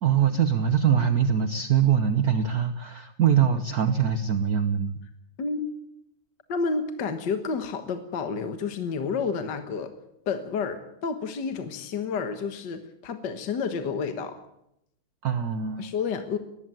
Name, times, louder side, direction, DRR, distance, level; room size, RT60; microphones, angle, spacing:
voice 1, 0.0-5.0 15.2-15.9, right 8 dB, 55° right, 10 dB, 1.2 m, -23 dB
voice 2, 5.4-5.7 6.5-9.9 10.3-14.4 15.8-16.4, left 5 dB, 55° left, 8 dB, 2.0 m, -30 dB
20.0 x 15.5 x 9.1 m, 0.81 s
omnidirectional pair, 2.3 m